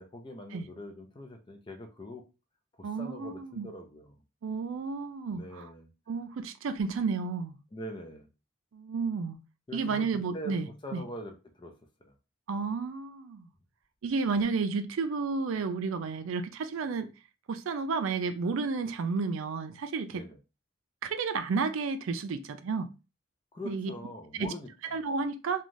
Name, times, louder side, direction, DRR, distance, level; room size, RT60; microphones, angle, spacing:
voice 1, 0.0-2.2 2.8-4.2 5.3-5.9 7.7-8.3 9.7-10.5 10.8-11.7 12.0-12.1 20.1-20.4 23.5-25.0, equal, 25° left, 0.5 m, -43 dB
voice 2, 2.8-3.7 4.4-5.7 6.1-7.6 8.7-9.4 9.7-11.0 12.5-13.5 14.0-17.1 17.5-20.2 21.0-22.9 23.7-23.9 24.4-24.5 24.9-25.6, right 4 dB, 75° right, 0.4 m, -32 dB
3.1 x 2.3 x 2.6 m
head